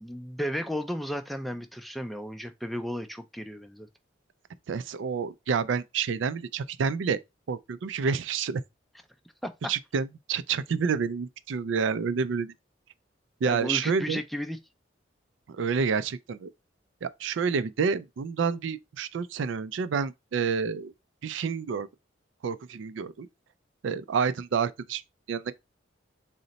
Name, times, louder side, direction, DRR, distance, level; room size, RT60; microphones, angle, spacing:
voice 1, 0.0-3.9 9.4-9.5 13.4-14.6, equal, ahead, 0.4 m, -34 dB
voice 2, 4.7-7.2 7.5-8.6 9.7-12.5 13.4-14.2 15.5-16.5 17.0-20.9 21.2-21.9 22.4-23.3 23.8-25.0 25.3-25.5, right 5 dB, 80° right, 0.4 m, -29 dB
3.9 x 2.1 x 3.9 m
head